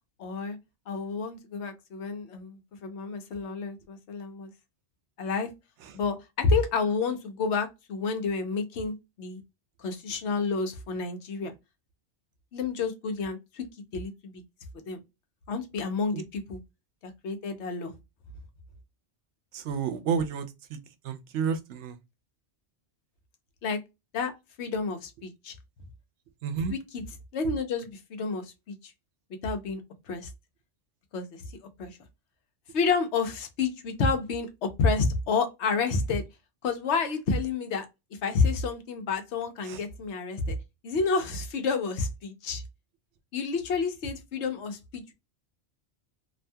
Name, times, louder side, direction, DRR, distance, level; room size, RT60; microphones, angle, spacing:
voice 1, 0.2-0.6 0.9-4.5 5.2-5.5 5.9-9.4 9.8-11.5 12.5-13.7 13.9-14.4 14.9-15.0 15.5-16.6 17.0-17.9 23.6-23.8 24.1-24.3 24.6-25.5 26.7-27.0 27.3-28.9 29.4-29.8 30.1-30.3 31.1-31.4 31.8-32.0 32.7-36.2 36.6-37.9 38.2-40.6 40.8-42.6 43.3-45.1, left 4 dB, 75° left, 1.0 m, -29 dB
voice 2, 19.5-20.8 21.0-22.0 26.4-26.7 39.7-39.8, right 6 dB, 85° right, 0.9 m, -30 dB
2.7 x 2.2 x 2.6 m
omnidirectional pair, 1.2 m